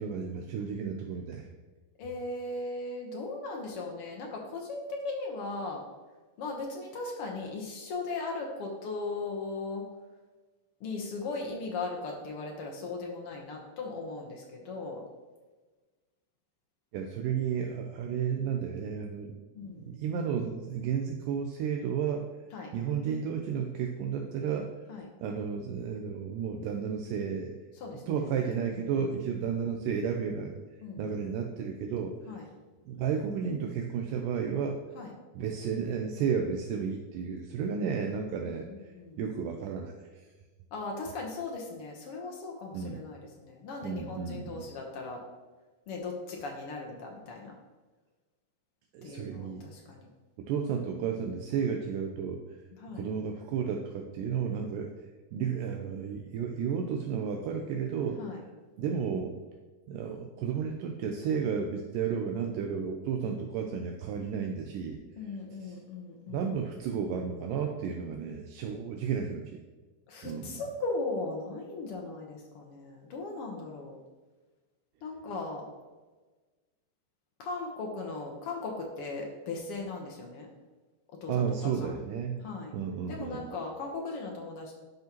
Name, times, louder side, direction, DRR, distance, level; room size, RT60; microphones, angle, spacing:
voice 1, 0.0-1.5 16.9-19.3 19.8-22.3 22.7-24.7 25.2-27.5 28.1-30.6 31.0-32.2 32.9-34.8 35.3-38.7 39.2-40.1 42.7-43.0 43.8-44.7 48.9-49.6 50.4-52.6 52.9-54.9 55.3-58.2 58.8-59.3 59.9-65.0 65.6-65.7 66.3-69.6 70.2-70.6 81.3-82.4 82.7-83.4, right 7 dB, 80° right, 3 dB, 2.1 m, -32 dB
voice 2, 2.0-5.8 6.4-9.8 10.8-15.0 19.5-19.9 22.5-22.7 24.9-25.1 27.8-28.2 28.7-28.8 30.8-31.6 32.3-32.5 34.9-35.1 38.7-39.2 40.7-45.2 45.9-47.5 49.0-50.1 52.8-53.1 58.2-58.4 65.2-66.5 70.1-74.0 75.0-75.6 77.4-80.5 81.2-81.9 82.4-82.7 83.1-84.7, left 3 dB, 80° left, 0 dB, 1.2 m, -38 dB
11.5 x 5.1 x 3.0 m, 1.3 s
omnidirectional pair, 4.1 m